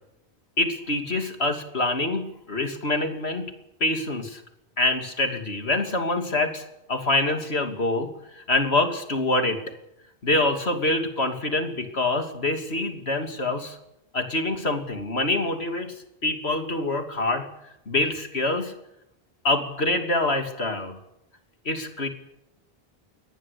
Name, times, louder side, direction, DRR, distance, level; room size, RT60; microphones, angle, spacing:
voice 1, 0.6-3.5 3.8-4.4 4.8-9.6 10.2-13.8 14.1-17.5 17.9-18.7 19.4-21.0 21.6-22.1, left 2 dB, 80° left, 5 dB, 3.2 m, -25 dB
22.5 x 19.5 x 8.7 m, 0.85 s
omnidirectional pair, 1.1 m